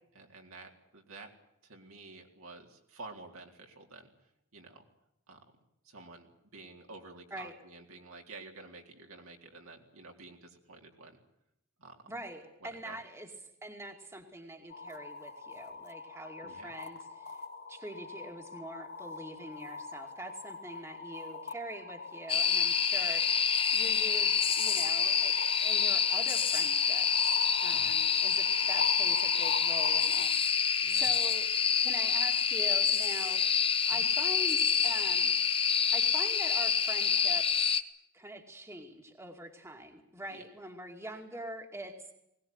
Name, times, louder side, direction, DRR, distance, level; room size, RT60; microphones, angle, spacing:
voice 1, 0.1-1.3 1.6-4.1 4.5-4.9 5.3-5.4 5.8-11.2 11.8-12.1 12.6-13.0 16.4-16.7 27.7-28.0 30.8-31.1 33.9-34.1 40.3-40.4, right 3 dB, 65° right, 2 dB, 3.9 m, -50 dB
voice 2, 12.1-13.3 13.6-17.4 17.7-30.3 30.6-31.5 31.8-33.4 33.7-35.4 35.9-37.8 38.1-42.1, right 1 dB, 10° right, 3 dB, 2.4 m, -44 dB
sound 1, 14.7-30.2, left 4 dB, 50° left, 2.6 m, -43 dB
sound 2, 22.3-37.8, left 7 dB, 25° left, 0.9 m, -27 dB
21.0 x 19.5 x 9.6 m, 0.82 s
head